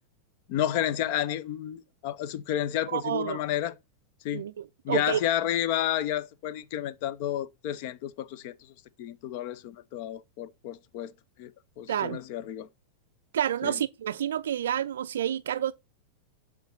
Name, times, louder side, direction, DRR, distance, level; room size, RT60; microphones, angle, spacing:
voice 1, 0.5-3.8 4.2-4.4 4.8-8.5 9.0-11.1 11.4-11.5 11.8-12.7 13.6-13.8, left 11 dB, 45° left, 0.7 m, -31 dB
voice 2, 2.9-3.4 4.3-5.2 11.9-12.2 13.3-15.7, right 10 dB, 60° right, 0.4 m, -29 dB
7.9 x 3.9 x 6.1 m
figure-of-eight pair, 90°, 0 cm